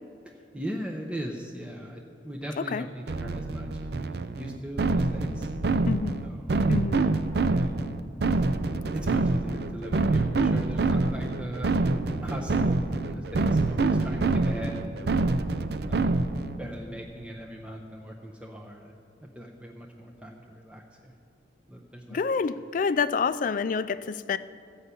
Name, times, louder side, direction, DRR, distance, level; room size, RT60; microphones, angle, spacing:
voice 1, 0.2-5.5 6.2-6.5 7.5-7.7 8.9-11.7 12.2-15.2 15.9-16.0 16.6-18.9 19.3-21.1 21.7-22.2, equal, 5° right, -1 dB, 0.6 m, -39 dB
sound 1, 3.1-16.6, right 3 dB, 60° right, 0.5 m, -26 dB
voice 2, 5.9-6.2 6.7-7.0 22.1-24.4, left 5 dB, 45° left, 14 dB, 0.3 m, -27 dB
14.5 x 5.6 x 8.2 m, 2.5 s
head